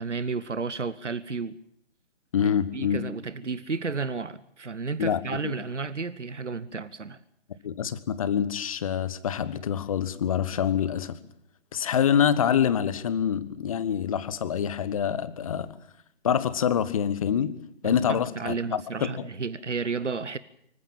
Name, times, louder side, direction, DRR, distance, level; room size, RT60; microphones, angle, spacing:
voice 1, 0.0-1.6 2.4-7.2 17.8-20.4, right 4 dB, 80° right, 1.1 m, -32 dB
voice 2, 2.3-3.0 5.0-5.5 7.6-11.2 11.7-15.7 16.2-17.5 17.8-19.1, left 8 dB, 30° left, 1.3 m, -26 dB
24.5 x 15.5 x 9.0 m
figure-of-eight pair, 140°, 35 cm